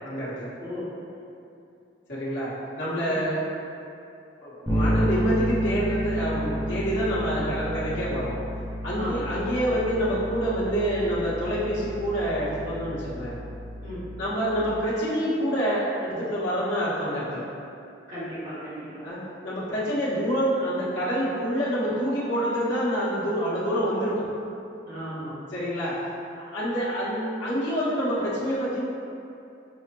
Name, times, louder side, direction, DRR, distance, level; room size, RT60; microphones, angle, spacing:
voice 1, 0.0-0.5 2.1-3.4 4.4-8.4 8.8-13.4 14.2-17.4 19.0-24.3 25.5-26.0 26.3-28.8, equal, 70° left, -10 dB, 1.2 m, -27 dB
Bass guitar, 4.7-14.5, equal, 10° right, 0.6 m, -30 dB
voice 2, 8.9-9.3 13.8-14.0 18.1-19.0 24.8-25.4, equal, 40° right, -14 dB, 1.3 m, -36 dB
5.5 x 2.1 x 3.0 m, 2.6 s
head